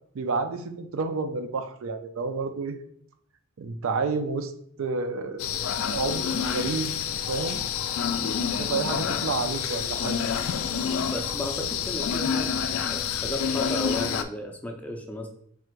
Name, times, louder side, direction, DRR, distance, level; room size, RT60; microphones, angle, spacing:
voice 1, 0.1-2.8 3.6-4.5 4.8-5.5 5.9-7.0 7.3-7.7 8.2-10.2, right 4 dB, 70° right, 8 dB, 0.4 m, -30 dB
sound 1, 5.4-14.2, left 7 dB, 90° left, 0.3 m, -28 dB
voice 2, 11.1-12.5 12.8-15.3, equal, 5° left, 2 dB, 0.4 m, -34 dB
3.5 x 2.5 x 4.4 m, 0.65 s
head